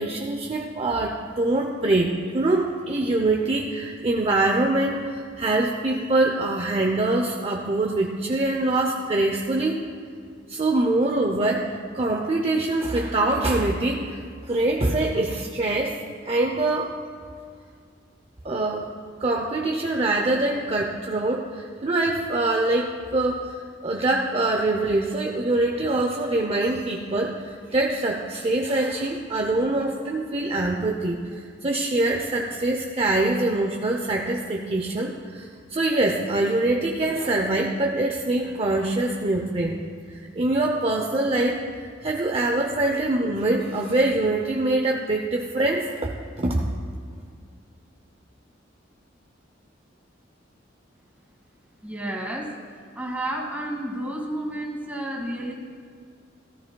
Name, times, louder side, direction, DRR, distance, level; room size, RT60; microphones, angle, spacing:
voice 1, 0.0-9.8 10.5-16.0 16.3-16.9 18.4-18.9 19.2-23.4 23.8-39.8 40.1-46.6, right 2 dB, 30° right, 1 dB, 0.6 m, -24 dB
voice 2, 51.8-52.6 53.0-55.5, right 1 dB, 10° right, -1 dB, 1.9 m, -31 dB
17.0 x 13.0 x 2.3 m, 2.2 s
head